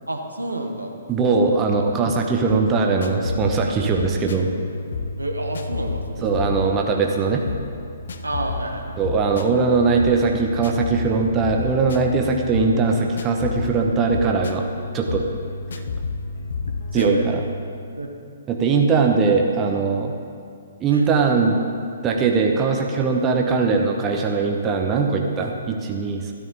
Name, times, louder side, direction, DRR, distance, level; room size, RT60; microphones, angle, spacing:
voice 1, 0.1-0.9 5.2-6.3 6.5-6.7 8.2-9.0 16.9-17.2 18.0-18.1 20.9-21.0, right 1 dB, 80° right, 3 dB, 1.3 m, -29 dB
voice 2, 1.1-4.5 6.2-7.5 9.0-14.7 14.9-15.2 16.9-17.4 18.5-20.1 20.8-21.6 22.0-26.3, right 4 dB, 20° right, 1 dB, 1.1 m, -20 dB
sound 1, 2.5-17.7, left 3 dB, 60° left, 0.7 m, -31 dB
13.0 x 12.5 x 4.1 m, 2.3 s
figure-of-eight pair, 125°, 0 cm